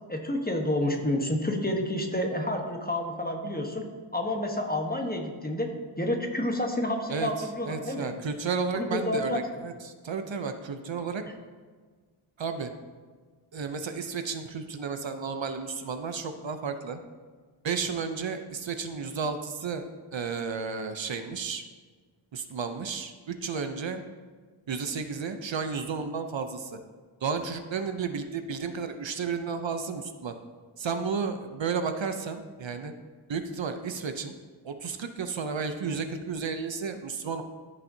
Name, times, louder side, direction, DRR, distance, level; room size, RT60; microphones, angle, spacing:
voice 1, 0.1-3.8 4.1-5.7 6.0-8.1 8.7-9.4, left 1 dB, 20° left, 2 dB, 1.1 m, -29 dB
voice 2, 7.1-11.2 12.4-12.7 13.5-17.0 17.6-19.8 20.1-21.6 22.3-24.0 24.7-26.8 27.2-30.3 30.8-32.9 33.3-34.3 34.6-37.4, right 5 dB, 65° right, 7 dB, 0.7 m, -32 dB
14.0 x 5.6 x 2.7 m, 1.5 s
wide cardioid pair, 50°, 50 cm